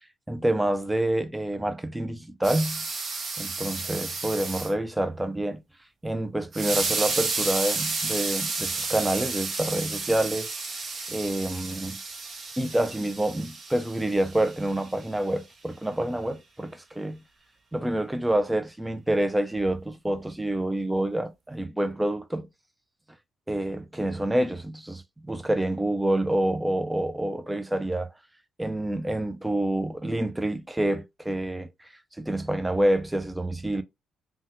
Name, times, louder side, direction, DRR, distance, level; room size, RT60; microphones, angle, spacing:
voice 1, 0.3-2.9 3.4-5.6 6.0-10.5 11.1-12.0 12.6-17.2 17.7-22.5 23.5-28.1 28.6-31.7 32.2-33.8, right 1 dB, 10° right, 0.4 m, -27 dB
sound 1, 2.4-4.7 6.5-14.9, right 4 dB, 40° right, 0.7 m, -32 dB
3.5 x 2.2 x 2.8 m
cardioid pair, 90°, 0 cm